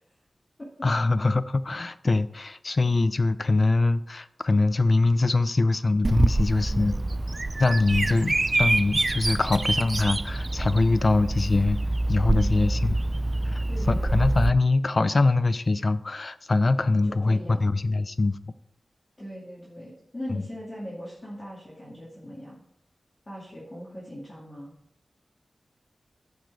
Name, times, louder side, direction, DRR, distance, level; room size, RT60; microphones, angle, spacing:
voice 1, 0.8-6.9 7.6-11.8 12.1-12.9 13.9-18.4 20.3-20.4, left 3 dB, 40° left, 0.5 m, -23 dB
Bird vocalization bird call bird song, 6.0-14.5, right 2 dB, 35° right, 0.3 m, -26 dB
voice 2, 6.7-7.0 12.3-13.0 13.7-14.3 17.0-17.8 19.2-22.6 23.3-24.7, equal, 25° left, 2.3 m, -40 dB
11.5 x 5.1 x 4.8 m
wide cardioid pair, 115°, 0 cm